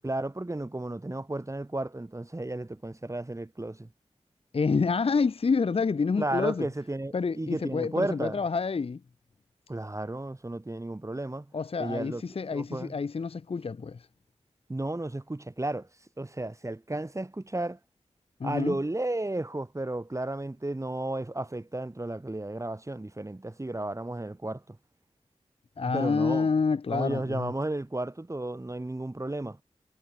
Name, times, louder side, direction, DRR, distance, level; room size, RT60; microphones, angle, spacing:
voice 1, 0.0-3.9 6.2-8.4 9.7-11.5 11.8-12.2 12.5-13.0 14.7-15.9 16.2-17.8 18.4-24.8 25.9-26.5 26.9-29.6, right 2 dB, 25° right, 2.5 m, -33 dB
voice 2, 4.5-6.7 7.1-9.0 11.5-14.1 18.4-18.8 25.8-27.5, left 5 dB, 55° left, 0.7 m, -28 dB
wide cardioid pair, 55°, 12 cm